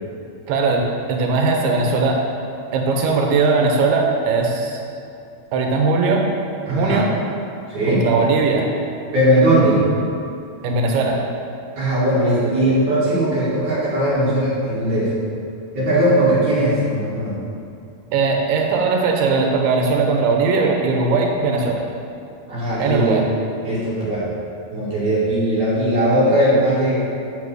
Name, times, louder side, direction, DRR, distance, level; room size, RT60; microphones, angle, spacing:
voice 1, 0.5-2.2 2.7-4.8 5.5-6.2 6.7-7.1 7.9-8.7 10.6-11.2 18.1-21.8 22.8-23.2, right 4 dB, 90° right, 1 dB, 3.0 m, -19 dB
voice 2, 6.7-7.0 7.7-8.0 9.1-9.8 11.8-15.1 15.7-17.4 22.5-23.2 23.6-24.3 24.7-27.1, right 1 dB, 55° right, -9 dB, 3.5 m, -19 dB
7.4 x 6.1 x 6.3 m, 2.6 s
omnidirectional pair, 4.4 m